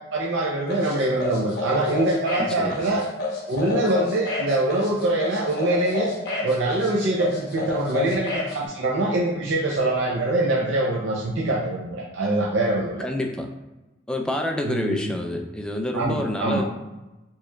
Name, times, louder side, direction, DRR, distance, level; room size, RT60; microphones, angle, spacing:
voice 1, 0.1-3.0 3.5-6.1 6.4-13.1 14.6-15.1 15.9-16.6, right 2 dB, 85° right, -3 dB, 0.5 m, -24 dB
sound 1, 0.7-8.5, left 2 dB, 60° left, 0.9 m, -29 dB
voice 2, 2.4-2.8 13.0-13.5 14.1-16.6, left 1 dB, 5° left, 2 dB, 0.3 m, -28 dB
4.4 x 3.0 x 2.2 m, 1.0 s
head